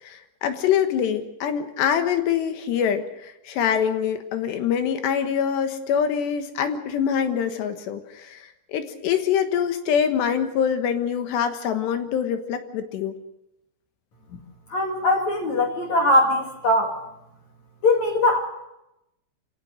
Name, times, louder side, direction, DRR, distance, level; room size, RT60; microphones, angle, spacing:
voice 1, 0.0-13.2, left 8 dB, 70° left, 7 dB, 3.4 m, -24 dB
voice 2, 14.7-17.0 17.8-18.4, left 1 dB, 50° left, 1 dB, 2.8 m, -21 dB
26.0 x 17.5 x 6.4 m, 0.88 s
omnidirectional pair, 5.3 m